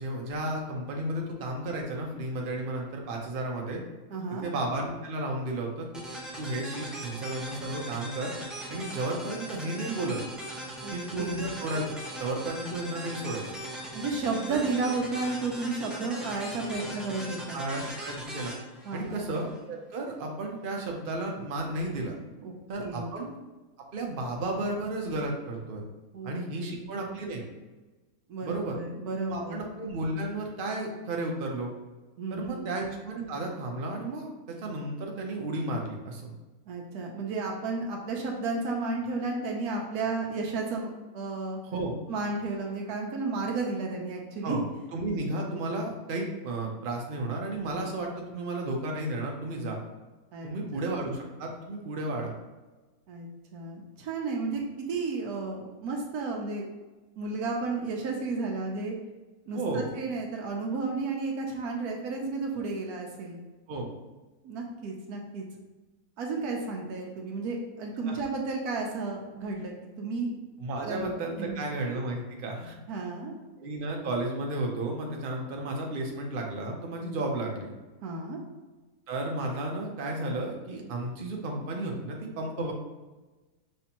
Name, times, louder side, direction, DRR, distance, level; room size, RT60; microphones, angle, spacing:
voice 1, 0.0-3.8 4.4-6.0 6.4-8.3 8.7-10.2 10.9-13.5 14.5-14.6 15.9-16.2 16.7-16.9 17.5-18.5 18.9-22.1 22.7-23.4 23.9-25.8 26.2-27.4 28.4-28.8 29.3-31.7 32.3-36.3 41.7-41.9 44.4-44.6 44.9-49.8 50.4-52.3 59.5-59.9 63.7-63.9 68.1-68.2 70.6-72.8 73.6-77.7 79.1-82.7, right 2 dB, 45° right, 0 dB, 0.8 m, -33 dB
voice 2, 4.1-4.5 10.8-11.5 13.9-17.6 18.8-19.3 22.4-23.2 26.1-26.3 26.6-26.7 28.3-29.6 32.2-32.7 36.7-41.6 42.1-44.6 50.3-50.9 53.1-56.6 57.2-58.9 59.5-63.4 64.4-65.4 66.2-70.3 70.8-71.1 71.4-71.6 72.9-73.3 78.0-78.4, right 3 dB, 85° right, 0 dB, 1.2 m, -33 dB
sound 1, 5.9-19.6, right 1 dB, ahead, 0.4 m, -40 dB
5.5 x 3.3 x 2.9 m, 1.2 s
omnidirectional pair, 1.6 m